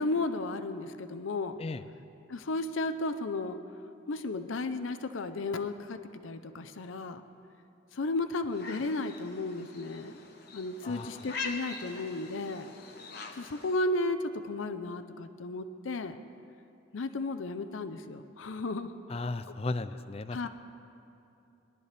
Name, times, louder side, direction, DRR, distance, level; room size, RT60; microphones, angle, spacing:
voice 1, 0.0-1.6 2.3-3.6 4.1-6.0 6.2-7.2 7.9-10.1 10.5-12.7 13.3-16.2 16.9-18.9 20.3-20.5, left 2 dB, 85° left, 9 dB, 0.6 m, -34 dB
sound 1, 8.5-13.8, left 4 dB, 55° left, 1.0 m, -43 dB
voice 2, 10.8-11.3 19.1-20.4, left 3 dB, 30° left, 12 dB, 0.4 m, -35 dB
21.0 x 12.5 x 3.4 m, 2.8 s
head